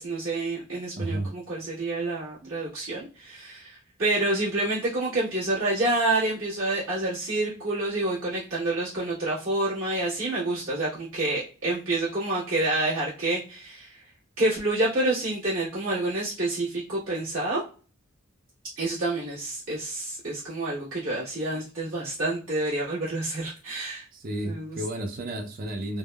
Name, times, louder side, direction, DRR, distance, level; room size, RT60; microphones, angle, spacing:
voice 1, 0.0-14.0 14.4-17.6 18.8-24.1 24.4-24.8, right 2 dB, 80° right, 1.3 m, -28 dB
voice 2, 0.9-1.3 2.4-2.5 21.5-21.6 24.1-26.0, right 1 dB, 45° right, 0.5 m, -32 dB
3.4 x 2.0 x 2.2 m
head